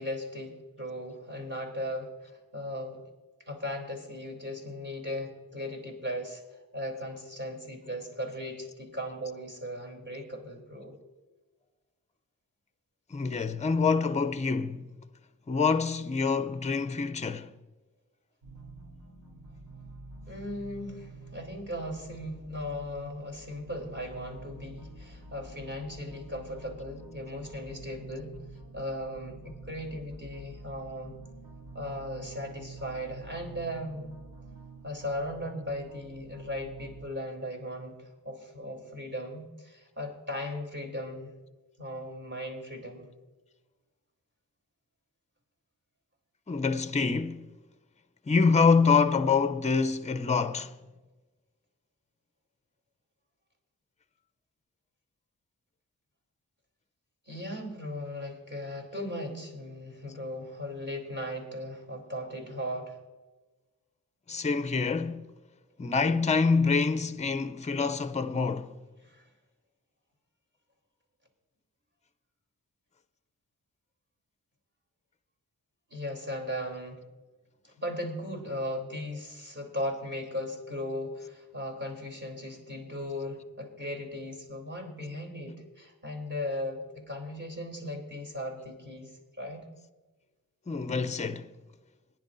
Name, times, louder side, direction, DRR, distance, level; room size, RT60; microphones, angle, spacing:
voice 1, 0.0-3.0 3.4-6.4 6.7-11.0 20.3-28.3 28.7-31.2 31.7-34.0 34.8-41.3 41.8-43.1 57.3-63.0 69.0-69.3 75.9-77.0 77.6-89.1 89.4-89.7, left 1 dB, 30° right, 3.4 m, -37 dB
voice 2, 13.1-14.9 15.5-17.5 46.5-47.5 48.3-50.7 64.3-65.2 65.8-68.7 90.7-91.5, left 4 dB, 20° left, 0.5 m, -26 dB
sound 1, 18.4-37.1, right 3 dB, 75° right, 3.6 m, -48 dB
21.0 x 10.5 x 2.6 m
wide cardioid pair, 95°, 34 cm